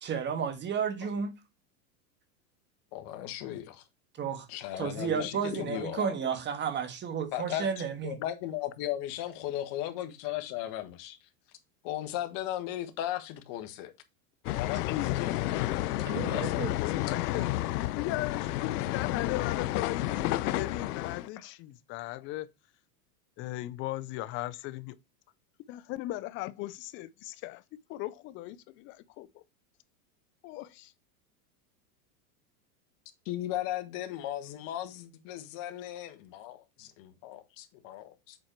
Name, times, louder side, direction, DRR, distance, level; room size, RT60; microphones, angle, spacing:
voice 1, 0.0-1.3 4.2-4.5 4.8-8.2 16.0-16.7, right 7 dB, 25° right, 1.4 m, -32 dB
voice 2, 2.9-3.8 4.5-6.0 7.3-11.2 11.8-13.9 14.5-15.3 16.3-16.8 33.2-38.4, left 13 dB, 50° left, 1.5 m, -37 dB
voice 3, 4.7-6.3 14.9-15.2 16.8-17.4 18.0-22.5 23.4-25.0 25.7-29.4 30.4-30.9, left 16 dB, 30° left, 0.4 m, -38 dB
sound 1, 14.4-21.3, left 15 dB, 85° left, 0.6 m, -31 dB
7.8 x 4.3 x 4.4 m
supercardioid pair, 130°, 45 cm